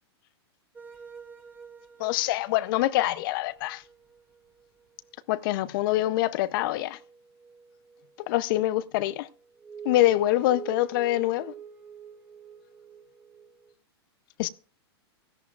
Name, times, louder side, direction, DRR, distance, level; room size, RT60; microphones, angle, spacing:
sound 1, 0.7-5.1 5.5-5.6 5.9-8.5 9.1-13.7, right 7 dB, 15° right, 1.9 m, -46 dB
voice 1, 2.0-3.8 5.3-7.0 8.3-9.3 9.8-11.5 14.4-14.5, left 15 dB, 55° left, 0.7 m, -25 dB
17.0 x 14.0 x 2.4 m
hypercardioid pair, 115°, 14 cm